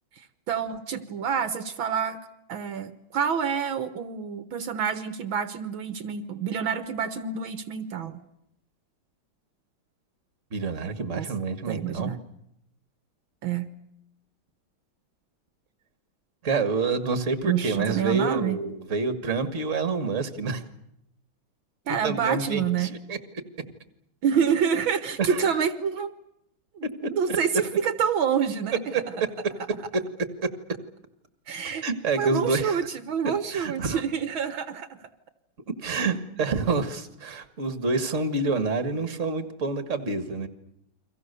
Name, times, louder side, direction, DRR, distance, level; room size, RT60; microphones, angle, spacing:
voice 1, 0.2-2.2 2.5-8.2 11.1-11.3 11.7-12.2 13.4-13.7 17.4-18.6 21.9-22.9 24.2-26.1 26.8-29.0 31.5-31.9 32.2-34.9 39.1-39.2, right 7 dB, 70° right, 12 dB, 1.9 m, -27 dB
voice 2, 10.5-12.1 16.4-20.6 22.0-23.2 25.2-25.6 27.0-27.1 29.9-30.0 30.4-30.5 31.8-32.9 33.2-34.0 35.8-40.5, right 3 dB, 35° right, 11 dB, 2.2 m, -28 dB
30.0 x 24.0 x 6.9 m, 0.79 s
omnidirectional pair, 2.3 m